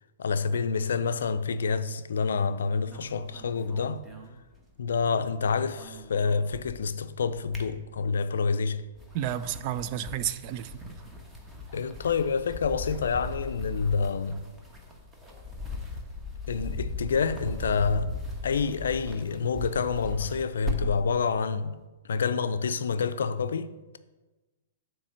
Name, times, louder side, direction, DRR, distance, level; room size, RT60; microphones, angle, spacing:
voice 1, 0.2-4.0 4.8-8.8 11.7-14.4 16.5-18.1 18.4-21.7 22.1-24.0, left 5 dB, 75° left, 0.4 m, -28 dB
sound 1, 2.9-5.0 5.3-6.9 7.3-8.3 8.8-21.1, left 2 dB, 15° right, 1.2 m, -39 dB
voice 2, 9.1-10.8, right 11 dB, 45° right, 0.4 m, -31 dB
7.7 x 3.3 x 6.3 m
hypercardioid pair, 115°, 0 cm